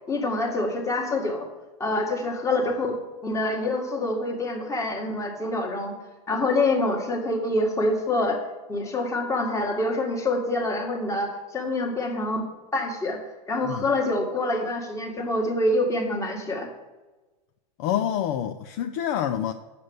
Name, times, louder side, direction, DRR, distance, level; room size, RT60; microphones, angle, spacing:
voice 1, 0.1-1.5 1.8-3.0 3.2-6.0 6.3-8.4 8.7-12.4 12.7-13.2 13.5-16.7, left 2 dB, 15° left, 2 dB, 1.8 m, -26 dB
voice 2, 17.8-19.5, left 10 dB, 45° left, 6 dB, 0.6 m, -27 dB
8.6 x 6.8 x 7.9 m, 1.2 s
supercardioid pair, 140°, 21 cm